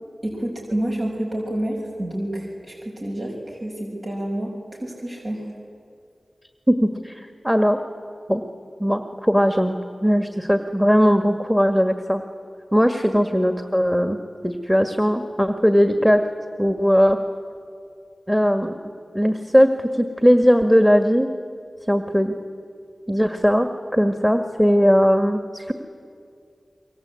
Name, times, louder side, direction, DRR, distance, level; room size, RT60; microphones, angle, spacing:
voice 1, 0.2-4.5 4.8-5.4, right 1 dB, 55° right, -2 dB, 5.9 m, -28 dB
voice 2, 6.7-7.8 8.3-8.4 8.8-12.2 12.7-14.2 14.4-16.2 16.6-17.2 18.3-18.7 19.1-21.3 21.9-22.4 23.1-25.7, equal, 5° right, 6 dB, 1.8 m, -19 dB
28.5 x 24.0 x 8.5 m, 2.3 s
wide cardioid pair, 55°, 0 cm